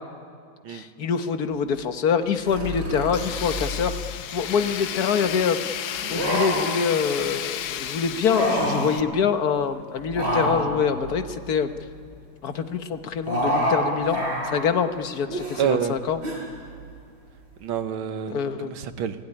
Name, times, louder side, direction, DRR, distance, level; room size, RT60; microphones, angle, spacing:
voice 1, 0.7-5.6 6.1-11.7 12.4-14.2 14.4-16.2 18.3-18.7, left 6 dB, 55° left, 8 dB, 1.5 m, -25 dB
sound 1, 2.4-4.1 5.9-6.8 8.1-8.9 10.1-11.9 13.2-13.8 14.1-14.6 15.3-15.7 16.2-16.3, equal, 65° right, 8.2 m, -27 dB
Tools, 3.1-9.0, left 10 dB, 75° left, 1.6 m, -33 dB
voice 2, 15.6-16.0 17.6-19.2, right 8 dB, 90° right, 9 dB, 2.0 m, -27 dB
28.0 x 17.5 x 10.0 m, 2.2 s
omnidirectional pair, 2.2 m